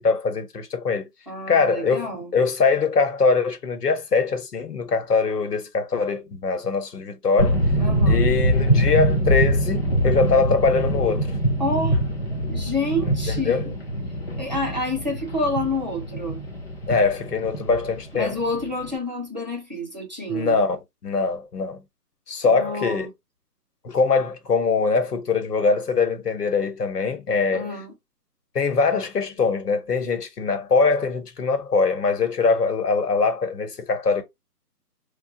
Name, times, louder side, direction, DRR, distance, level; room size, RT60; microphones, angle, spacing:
voice 1, 0.0-1.1 1.5-7.6 8.1-11.3 13.0-13.6 16.9-18.4 20.3-21.8 22.3-23.1 23.8-27.7 28.5-34.2, left 4 dB, 75° left, 1.0 m, -22 dB
voice 2, 1.3-2.3 7.8-8.3 11.6-12.0 12.5-13.7 14.4-16.4 18.1-20.6 22.4-23.1 27.5-27.9, left 1 dB, 30° right, 0.7 m, -28 dB
sound 1, 7.4-18.9, equal, 40° left, 0.5 m, -23 dB
3.2 x 2.3 x 2.7 m
hypercardioid pair, 180°, 48 cm